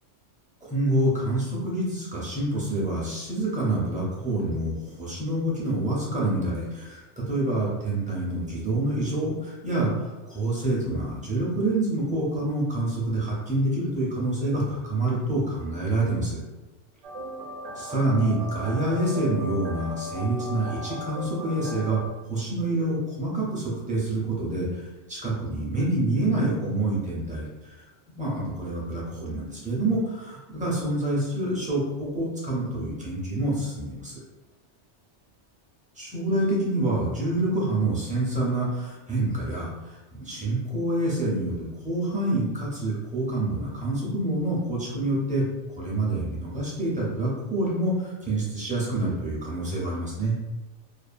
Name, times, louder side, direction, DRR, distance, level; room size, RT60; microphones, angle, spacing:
voice 1, 0.7-16.4 17.7-22.0 22.3-27.8 28.2-34.2 36.0-45.4 45.8-50.4, right 1 dB, 10° right, -6 dB, 0.4 m, -27 dB
sound 1, 17.0-22.1, equal, 85° right, 0.9 m, -37 dB
2.6 x 2.3 x 2.5 m, 1.1 s
omnidirectional pair, 1.2 m